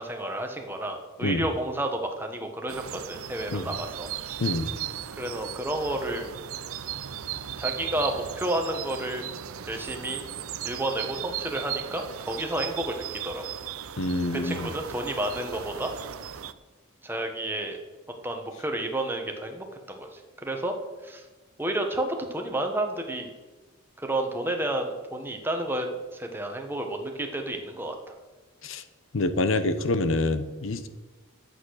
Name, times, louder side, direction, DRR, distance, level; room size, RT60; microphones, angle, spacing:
voice 1, 0.0-4.1 5.2-6.3 7.6-9.3 9.7-10.2 10.6-13.4 14.3-15.9 17.0-17.8 18.2-20.7 21.0-21.2 21.6-23.3 24.0-28.1, right 1 dB, 10° right, 4 dB, 1.2 m, -31 dB
sound 1, 2.7-16.5, right 10 dB, 80° right, 0.6 m, -37 dB
voice 2, 14.0-14.7 28.6-28.8 29.1-30.9, left 2 dB, 70° left, 11 dB, 0.8 m, -26 dB
11.0 x 8.2 x 6.4 m, 1.3 s
head